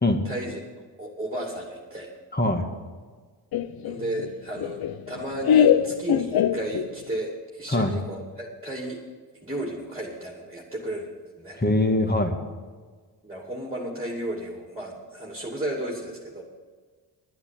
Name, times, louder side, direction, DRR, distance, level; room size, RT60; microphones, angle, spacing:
voice 1, 0.2-0.6 1.0-2.1 3.8-9.0 9.4-11.1 11.4-11.6 13.2-16.4, right 1 dB, 10° right, -1 dB, 2.5 m, -33 dB
voice 2, 2.3-2.7 7.7-7.9 11.6-12.3, left 2 dB, 20° left, 4 dB, 1.9 m, -22 dB
Laughter, 3.5-7.2, left 9 dB, 55° left, 0.7 m, -23 dB
10.5 x 9.5 x 7.6 m, 1.5 s
cardioid pair, 70°, 45 cm